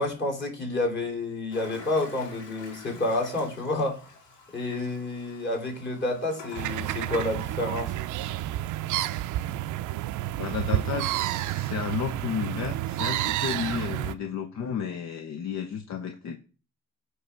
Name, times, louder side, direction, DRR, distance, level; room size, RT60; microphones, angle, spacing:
voice 1, 0.0-4.1 4.5-8.0, left 2 dB, 35° left, 0 dB, 3.1 m, -29 dB
Toilet flush, 1.5-7.0, left 3 dB, 80° left, 2.4 m, -47 dB
sound 1, 6.5-14.2, right 14 dB, 80° right, 0.5 m, -30 dB
voice 2, 10.4-16.4, left 7 dB, 65° left, 5 dB, 0.8 m, -32 dB
9.4 x 3.4 x 5.7 m, 0.36 s
cardioid pair, 90°, 30 cm